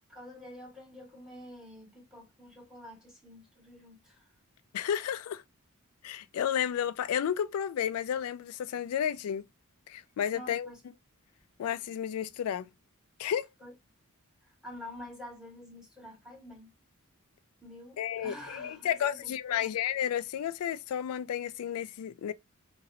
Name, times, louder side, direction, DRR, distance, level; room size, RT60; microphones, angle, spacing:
voice 1, 0.1-4.3 10.3-10.8 13.6-13.7 14.4-16.7 17.6-19.7, left 1 dB, 5° right, 1.2 m, -48 dB
voice 2, 4.7-5.4 6.0-9.4 9.9-10.7 11.6-12.7 13.2-13.5 18.0-22.3, left 9 dB, 90° left, 0.3 m, -32 dB
2.9 x 2.7 x 2.6 m
head